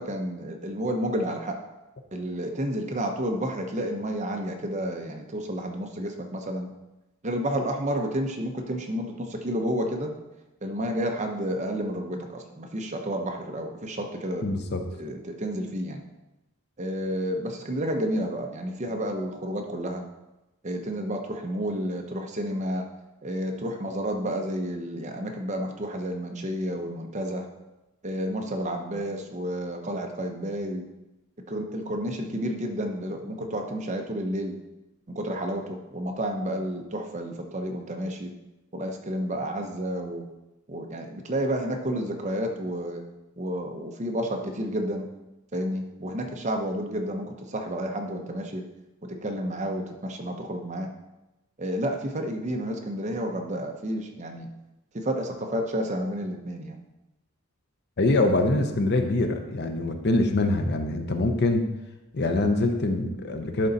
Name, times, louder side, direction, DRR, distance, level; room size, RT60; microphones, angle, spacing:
voice 1, 0.0-1.6 2.1-6.7 7.2-10.1 10.6-14.5 15.0-16.0 16.8-20.0 20.6-22.9 23.2-27.5 28.0-30.9 31.5-34.6 35.1-38.3 38.7-40.3 40.7-43.0 43.4-45.1 45.5-48.6 49.0-50.9 51.6-54.5 54.9-56.8, equal, 30° right, 3 dB, 0.8 m, -30 dB
voice 2, 14.4-14.8 58.0-61.7 62.1-63.7, left 2 dB, 50° left, 6 dB, 0.7 m, -24 dB
11.0 x 3.9 x 4.1 m, 0.97 s
head